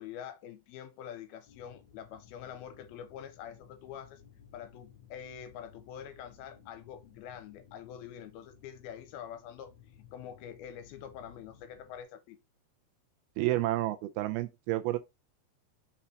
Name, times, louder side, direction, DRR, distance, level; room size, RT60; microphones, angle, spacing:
voice 1, 0.0-4.2 4.5-12.4, left 9 dB, 80° left, 2.4 m, -46 dB
sound 1, 1.4-12.0, left 7 dB, 60° left, 2.1 m, -58 dB
voice 2, 13.4-15.0, right 16 dB, 80° right, 2.3 m, -30 dB
6.0 x 4.2 x 4.2 m
omnidirectional pair, 4.7 m